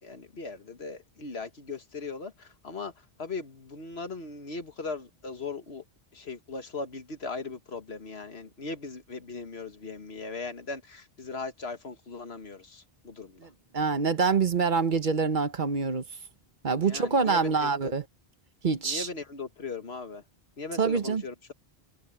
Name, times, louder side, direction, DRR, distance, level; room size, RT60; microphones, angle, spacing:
voice 1, 0.0-5.8 6.1-13.5 16.7-17.9 18.8-20.2 20.6-21.5, left 4 dB, 85° left, 1.9 m, -39 dB
voice 2, 13.4-16.0 16.6-18.0 18.6-19.1 20.7-21.2, right 5 dB, 55° right, 1.1 m, -26 dB
omnidirectional pair, 1.0 m